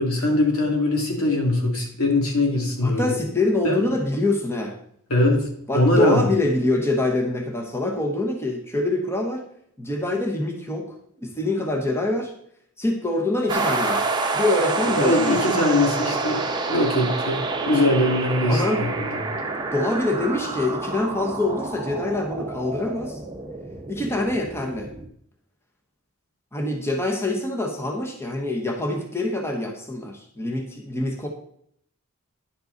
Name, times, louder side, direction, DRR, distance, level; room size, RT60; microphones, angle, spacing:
voice 1, 0.0-3.2 3.6-3.8 5.1-5.5 5.7-6.3 14.9-19.2, left 1 dB, 75° left, 1 dB, 2.6 m, -22 dB
voice 2, 2.8-4.8 5.7-9.4 9.8-10.9 11.2-12.3 12.8-14.0 14.3-15.5 18.5-18.9 19.7-23.2 23.9-24.9 26.5-31.3, left 2 dB, 10° left, 1 dB, 1.1 m, -25 dB
sound 1, 13.5-25.1, right 3 dB, 20° right, 1.0 m, -28 dB
10.5 x 7.9 x 4.0 m, 0.68 s
head